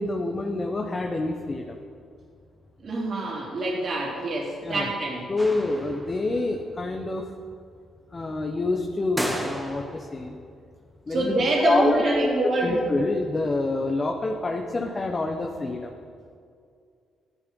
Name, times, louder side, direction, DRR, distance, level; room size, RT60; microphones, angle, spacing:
voice 1, 0.0-1.8 4.6-4.9 5.3-7.3 8.1-10.4 11.1-11.3 11.6-12.3 12.6-15.9, left 2 dB, 30° left, 2 dB, 1.2 m, -27 dB
voice 2, 2.8-5.3 11.1-12.8, right 2 dB, 50° right, -3 dB, 3.6 m, -25 dB
sound 1, 5.4-6.3 9.2-10.2, equal, 10° right, 2.1 m, -33 dB
15.5 x 11.5 x 5.5 m, 2.3 s
cardioid pair, 90°, 0 cm